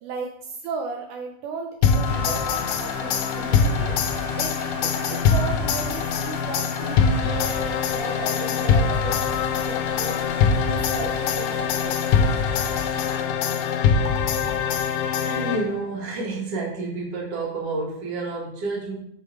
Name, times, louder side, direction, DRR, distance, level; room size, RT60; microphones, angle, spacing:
voice 1, 0.0-4.0 4.3-10.2 10.6-12.0, right 4 dB, 80° right, 3 dB, 2.2 m, -35 dB
sound 1, 1.8-15.9, left 6 dB, 85° left, 2.2 m, -23 dB
Rain, 2.0-13.2, left 1 dB, 30° left, 2.0 m, -38 dB
voice 2, 15.1-18.9, right 3 dB, 50° right, -2 dB, 2.7 m, -29 dB
6.0 x 5.7 x 4.9 m, 0.69 s
omnidirectional pair, 3.6 m